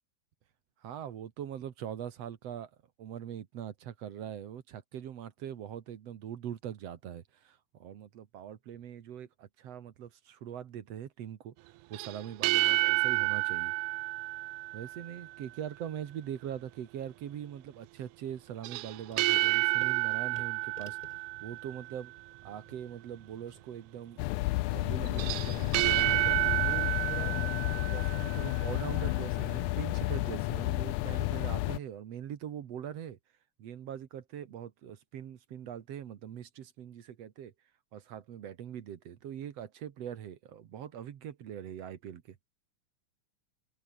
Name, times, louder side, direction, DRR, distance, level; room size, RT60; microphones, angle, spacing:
voice 1, 0.8-2.7 3.0-13.7 14.7-22.1 22.4-24.2 24.7-27.5 27.9-33.2 33.6-37.5 37.9-42.4, right 9 dB, 60° right, 2.4 m, -42 dB
sound 1, 11.9-15.3 18.6-22.0 25.1-28.6, right 19 dB, 90° right, 2.0 m, -30 dB
sound 2, 19.1-25.7, left 1 dB, 15° left, 4.1 m, -57 dB
sound 3, 24.2-31.8, left 19 dB, 85° left, 2.1 m, -31 dB
omnidirectional pair, 3.4 m